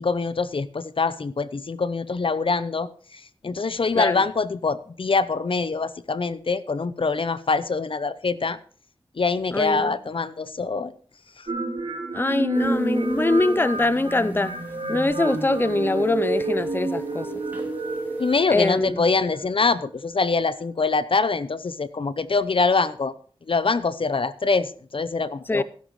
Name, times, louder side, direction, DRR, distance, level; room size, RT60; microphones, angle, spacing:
voice 1, 0.0-8.6 9.2-10.9 11.4-11.5 18.2-23.1 23.5-25.6, left 4 dB, 65° left, 0.7 m, -24 dB
voice 2, 9.5-10.0 12.1-14.6 14.9-17.3 18.5-19.0 25.5-25.6, left 2 dB, 20° left, 0.6 m, -23 dB
sound 1, 11.5-19.2, right 2 dB, 85° right, 4.0 m, -29 dB
sound 2, 12.5-18.4, right 2 dB, 20° right, 3.0 m, -36 dB
16.5 x 10.5 x 3.2 m
wide cardioid pair, 55°, 10 cm